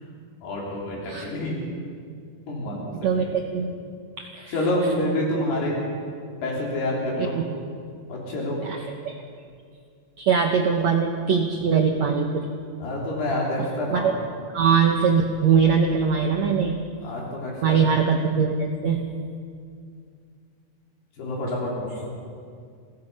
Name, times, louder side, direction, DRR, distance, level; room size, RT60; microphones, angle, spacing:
voice 1, 0.4-1.6 2.5-3.3 4.5-5.8 6.4-7.4 8.1-8.6 12.8-14.2 17.0-17.8 21.2-21.9, left 1 dB, 90° left, -4 dB, 5.4 m, -27 dB
voice 2, 2.9-3.7 4.3-4.6 7.2-7.5 8.6-8.8 9.1-9.2 10.2-12.5 13.9-14.1 14.5-16.9 17.6-19.0, right 6 dB, 70° right, 2 dB, 1.8 m, -22 dB
27.5 x 17.5 x 5.5 m, 2.3 s
omnidirectional pair, 4.5 m